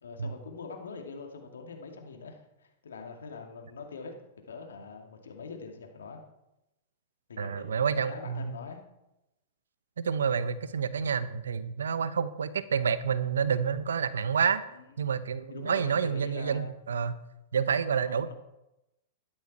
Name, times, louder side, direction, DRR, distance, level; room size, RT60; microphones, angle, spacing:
voice 1, 0.0-4.2 4.5-6.2 7.3-8.8 14.7-14.8 15.5-16.7 18.0-18.3, left 4 dB, 85° left, 3 dB, 2.4 m, -43 dB
voice 2, 7.4-8.6 10.0-14.6 15.0-17.2 17.5-18.3, right 6 dB, 85° right, 14 dB, 0.9 m, -29 dB
13.0 x 12.0 x 4.3 m, 0.91 s
hypercardioid pair, 110°, 0 cm